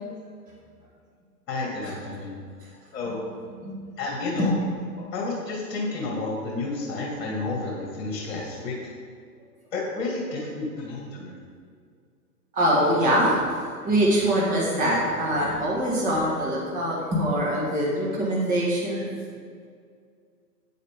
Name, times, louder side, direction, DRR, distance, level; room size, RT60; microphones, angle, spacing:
voice 1, 1.5-2.4 2.9-3.2 4.0-4.5 5.0-8.8 9.7-11.4, left 3 dB, 50° left, -3 dB, 2.3 m, -31 dB
voice 2, 12.5-19.1, equal, 15° right, -4 dB, 1.8 m, -23 dB
9.4 x 9.2 x 3.7 m, 2.2 s
hypercardioid pair, 145°, 49 cm